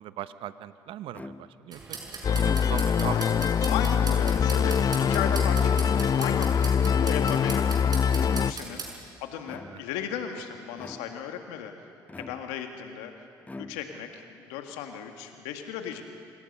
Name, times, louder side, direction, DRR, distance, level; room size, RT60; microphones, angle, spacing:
voice 1, 0.0-2.0 2.3-3.2, right 12 dB, 65° right, 13 dB, 0.8 m, -39 dB
sound 1, 1.1-1.7 2.3-3.1 3.9-4.6 5.4-6.1 6.8-7.4 8.1-8.7 9.4-10.0 10.8-11.4 12.1-12.8 13.4-14.1, left 2 dB, 15° left, 0.9 m, -44 dB
sound 2, 1.7-8.9, right 4 dB, 45° right, 5.7 m, -39 dB
sound 3, 2.2-8.5, left 7 dB, 40° left, 0.4 m, -24 dB
voice 2, 3.0-3.4 3.7-8.8 9.2-11.7 12.2-13.1 13.6-16.0, left 8 dB, 80° left, 5 dB, 1.8 m, -36 dB
26.0 x 18.5 x 5.5 m, 2.3 s
hypercardioid pair, 55°, 10 cm